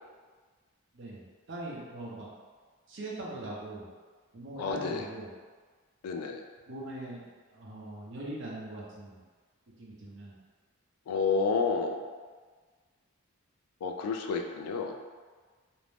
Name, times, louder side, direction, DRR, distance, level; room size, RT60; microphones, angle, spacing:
voice 1, 1.5-2.3 2.9-3.9 4.3-5.3 6.7-9.2 9.8-10.3, right 1 dB, 55° right, -4 dB, 0.6 m, -41 dB
voice 2, 4.6-5.1 6.0-6.4 11.1-12.0 13.8-14.9, left 4 dB, 80° left, 4 dB, 0.3 m, -30 dB
2.5 x 2.1 x 3.2 m, 1.5 s
head